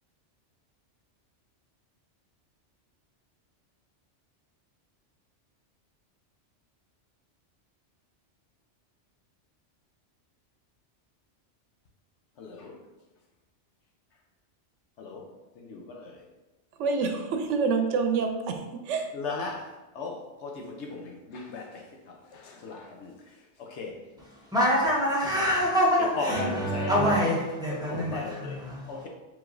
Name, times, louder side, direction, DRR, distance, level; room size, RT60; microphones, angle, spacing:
voice 1, 12.4-12.8 15.0-15.2 15.6-16.1 19.1-19.6 19.9-21.8 22.1-23.1 23.6-23.9 26.2-27.1 27.7-28.6 28.9-29.1, left 3 dB, 75° left, 1.0 m, -36 dB
voice 2, 16.8-19.1, right 4 dB, 90° right, 0.9 m, -27 dB
voice 3, 24.5-28.8, equal, 5° right, 1.1 m, -25 dB
4.7 x 3.9 x 2.6 m
omnidirectional pair, 1.2 m